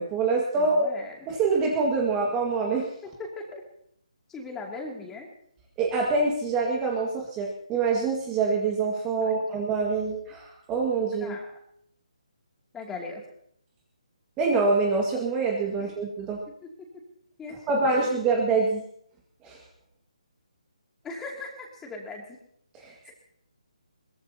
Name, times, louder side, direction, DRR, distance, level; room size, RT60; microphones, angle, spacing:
voice 1, 0.0-0.9 1.3-2.9 5.8-11.4 14.4-16.4 17.7-18.8 19.4-19.6 22.7-23.1, right 4 dB, 15° right, -1 dB, 1.8 m, -25 dB
voice 2, 0.6-1.3 3.0-3.6 4.3-5.3 9.2-9.5 11.2-11.5 12.7-13.2 15.8-15.9 16.6-17.0 17.4-18.0 21.0-22.4 23.0-23.1, left 3 dB, 10° left, 0 dB, 2.6 m, -39 dB
22.0 x 21.0 x 2.9 m, 0.69 s
hypercardioid pair, 160°, 4 cm